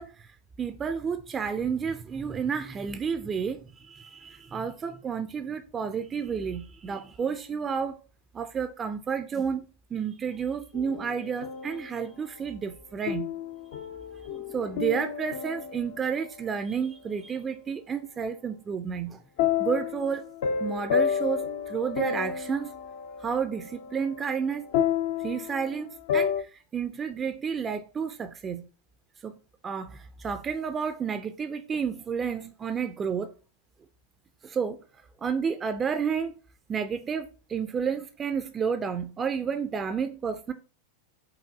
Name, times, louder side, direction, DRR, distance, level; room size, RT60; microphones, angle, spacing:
voice 1, 0.0-8.0 8.3-13.3 14.2-19.2 19.6-20.3 20.6-22.7 23.2-24.7 25.2-28.7 29.2-29.4 29.6-33.3 34.4-34.8 35.2-36.3 36.7-40.5, right 6 dB, 20° right, 0.3 m, -31 dB
sound 1, 10.7-12.0 13.1-16.3 19.4-26.4, left 8 dB, 55° left, 0.4 m, -31 dB
4.8 x 2.6 x 3.7 m
figure-of-eight pair, 90°, 0 cm